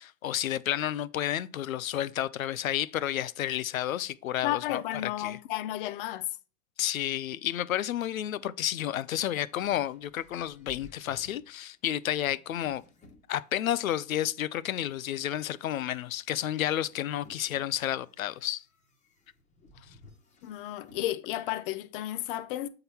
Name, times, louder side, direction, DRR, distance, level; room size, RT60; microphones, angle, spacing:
voice 1, 0.0-5.4 6.8-12.8 13.3-18.6, left 12 dB, 75° left, 0.7 m, -31 dB
voice 2, 4.4-6.3 20.4-22.7, left 14 dB, 40° left, 0.7 m, -33 dB
sound 1, 9.1-13.9 14.4-21.1, left 2 dB, 15° left, 1.3 m, -58 dB
7.7 x 3.9 x 4.2 m
hypercardioid pair, 125°, 42 cm